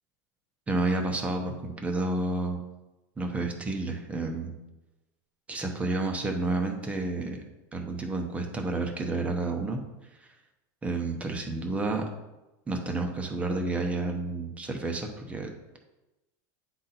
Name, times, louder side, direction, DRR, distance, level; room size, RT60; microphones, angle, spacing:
voice 1, 0.7-2.6 3.2-4.5 5.5-7.4 7.7-9.8 10.2-10.3 10.8-12.0 12.7-15.5, right 2 dB, 15° right, 4 dB, 0.8 m, -30 dB
9.1 x 4.0 x 4.3 m, 1.0 s
supercardioid pair, 160°, 10 cm